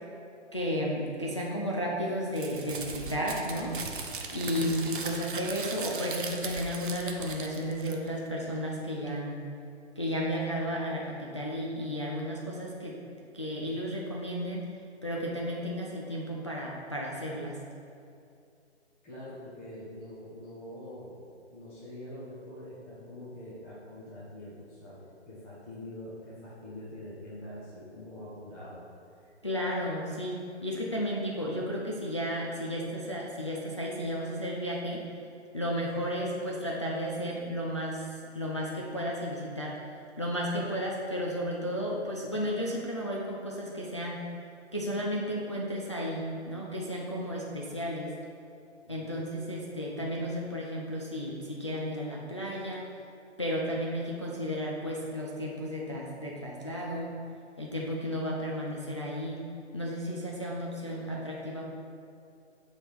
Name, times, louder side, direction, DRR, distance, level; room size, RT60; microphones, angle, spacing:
voice 1, 0.5-3.8 4.3-9.4 10.0-13.0 13.3-14.6 15.0-17.6 29.4-35.0 35.5-39.8 40.2-44.2 44.7-48.1 48.9-52.8 53.4-57.2 57.6-59.4 59.7-61.7, equal, 25° left, -4 dB, 0.4 m, -33 dB
Crumpling crinkling, 2.3-8.3, right 4 dB, 45° right, 0.7 m, -38 dB
voice 2, 19.0-21.2 21.5-28.8 29.1-29.3 48.8-49.0, left 1 dB, 10° left, -10 dB, 0.7 m, -44 dB
7.7 x 3.5 x 4.6 m, 2.5 s
hypercardioid pair, 155°, 35 cm